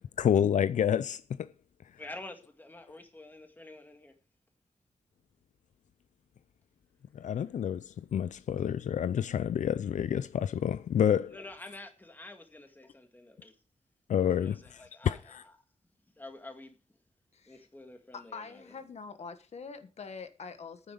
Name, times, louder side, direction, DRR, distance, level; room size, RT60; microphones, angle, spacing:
voice 1, 0.2-1.5 7.1-11.3 14.1-14.6 15.0-15.4, left 9 dB, 85° left, 0.5 m, -28 dB
voice 2, 2.0-4.1 11.3-13.6 14.2-15.5 16.1-17.0 17.5-18.7, left 2 dB, 15° left, 1.9 m, -48 dB
voice 3, 17.3-17.7 18.1-20.9, left 5 dB, 60° left, 1.4 m, -44 dB
11.0 x 9.4 x 5.0 m
wide cardioid pair, 175°, 12 cm